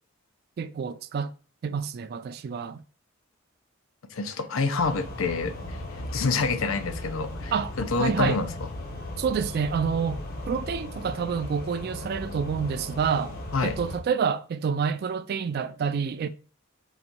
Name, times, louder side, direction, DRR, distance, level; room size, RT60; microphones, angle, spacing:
voice 1, 0.6-1.3 1.6-2.8 7.5-8.4 9.2-10.2 10.5-13.4 13.6-16.3, right 6 dB, 50° right, 0.3 m, -28 dB
voice 2, 4.1-8.7 13.5-13.7, left 4 dB, 85° left, 0.6 m, -28 dB
sound 1, 4.8-14.0, left 1 dB, 50° left, 0.8 m, -37 dB
4.0 x 2.6 x 4.5 m
head